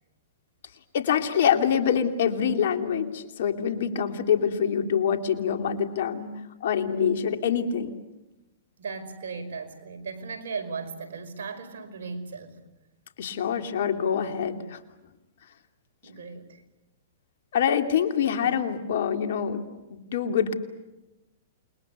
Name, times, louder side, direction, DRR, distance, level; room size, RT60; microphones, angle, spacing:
voice 1, 0.9-6.3 6.6-7.9 13.2-14.8 17.5-20.5, left 8 dB, 65° left, 6 dB, 2.8 m, -25 dB
voice 2, 8.8-12.6 16.0-16.6, right 4 dB, 75° right, 6 dB, 5.2 m, -37 dB
28.5 x 21.5 x 8.3 m, 1.0 s
hypercardioid pair, 125°, 0 cm